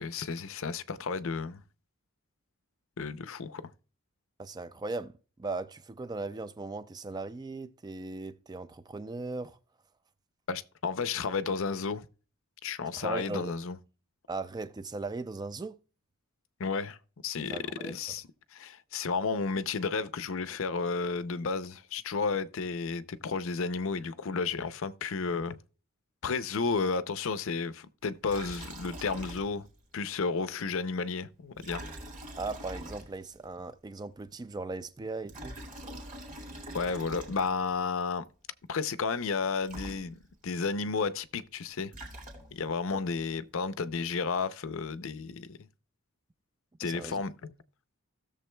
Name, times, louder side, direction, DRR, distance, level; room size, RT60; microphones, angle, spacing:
voice 1, 0.0-1.6 3.0-3.6 10.5-12.1 12.6-13.8 16.6-17.0 17.2-25.6 26.2-29.7 29.9-31.8 36.7-38.3 38.7-41.9 42.5-45.6 46.8-47.3, left 4 dB, 60° left, 0.6 m, -32 dB
voice 2, 4.4-9.6 12.9-13.5 14.3-15.8 17.5-18.0 32.3-35.6 46.8-47.2, right 3 dB, 20° right, 0.3 m, -38 dB
Liquid, 28.3-29.8 30.1-30.2 31.6-33.5 35.1-37.8 39.4-39.5 39.7-40.5 41.7-42.8, right 1 dB, 35° right, 2.2 m, -44 dB
16.5 x 6.9 x 2.2 m
head